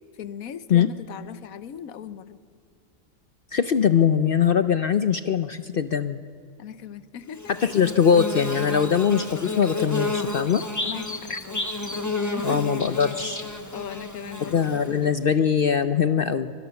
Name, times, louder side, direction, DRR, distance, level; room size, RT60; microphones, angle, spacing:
voice 1, 0.2-2.4 6.6-7.5 10.8-11.6 11.9-12.8 13.7-15.0, left 8 dB, 80° left, 14 dB, 1.3 m, -38 dB
voice 2, 3.5-6.2 7.6-10.6 11.3-11.4 12.4-13.4 14.4-16.5, left 7 dB, 55° left, 11 dB, 0.7 m, -22 dB
Bird / Buzz, 7.4-15.1, left 2 dB, 15° left, 1.2 m, -31 dB
24.0 x 18.0 x 7.0 m, 2.3 s
omnidirectional pair, 1.4 m